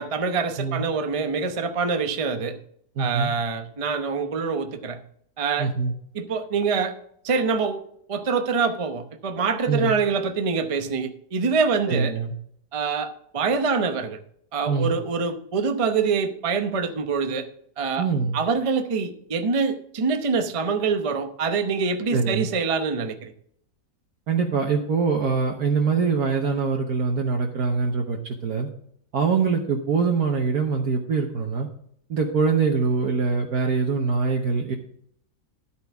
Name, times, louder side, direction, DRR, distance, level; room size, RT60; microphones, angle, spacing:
voice 1, 0.0-2.6 3.0-5.0 5.4-5.7 6.1-6.9 7.2-7.8 8.1-12.1 12.7-14.2 14.5-17.5 17.8-18.1 18.3-23.3, right 5 dB, 35° right, 7 dB, 0.5 m, -25 dB
voice 2, 3.0-3.3 5.6-5.9 9.7-9.9 11.9-12.3 14.7-14.9 18.0-18.4 22.1-22.5 24.3-28.7 29.1-31.7 32.1-34.8, right 5 dB, 60° right, 2 dB, 1.4 m, -23 dB
11.5 x 8.6 x 3.5 m, 0.68 s
omnidirectional pair, 2.0 m